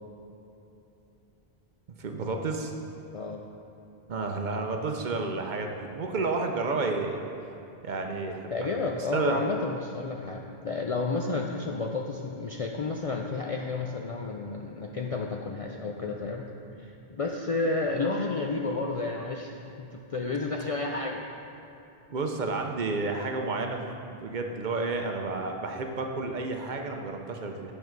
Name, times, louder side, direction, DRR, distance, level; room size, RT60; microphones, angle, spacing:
voice 1, 2.0-2.7 4.1-7.2 7.8-8.7 9.1-9.4 22.1-27.7, right 3 dB, 55° right, 3 dB, 0.7 m, -31 dB
voice 2, 3.1-3.4 8.5-16.5 16.8-21.2, left 3 dB, 55° left, 0 dB, 0.4 m, -31 dB
8.6 x 5.4 x 4.5 m, 2.9 s
omnidirectional pair, 1.0 m